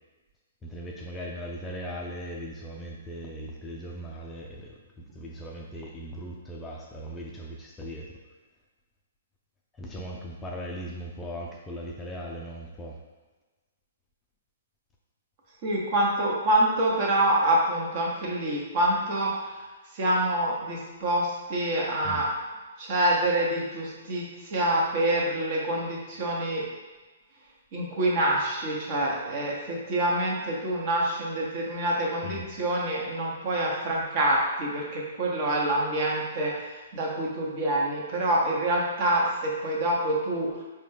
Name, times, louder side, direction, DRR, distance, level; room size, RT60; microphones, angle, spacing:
voice 1, 0.6-4.8 5.1-8.1 9.7-13.0 22.0-22.2 32.2-32.5, equal, 15° left, -2 dB, 0.4 m, -38 dB
voice 2, 15.6-19.5 19.9-22.3 22.8-26.7 27.7-40.6, right 1 dB, 40° right, -3 dB, 0.9 m, -26 dB
4.1 x 2.3 x 3.3 m, 1.3 s
figure-of-eight pair, 120°, 0 cm